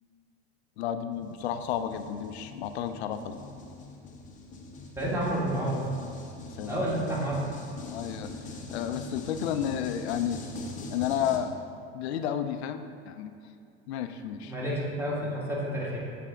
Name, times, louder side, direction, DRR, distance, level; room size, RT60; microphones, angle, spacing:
voice 1, 0.8-3.4 6.6-7.3 7.9-8.3 8.7-10.4 10.9-11.6 11.9-13.3 13.9-14.5, left 9 dB, 85° left, 9 dB, 0.5 m, -32 dB
sound 1, 1.1-11.4, left 3 dB, 25° left, 0.7 m, -42 dB
voice 2, 5.0-5.8 6.6-7.4 14.4-16.0, right 1 dB, 5° right, -6 dB, 1.5 m, -30 dB
7.6 x 3.4 x 3.7 m, 2.5 s
supercardioid pair, 110°, 32 cm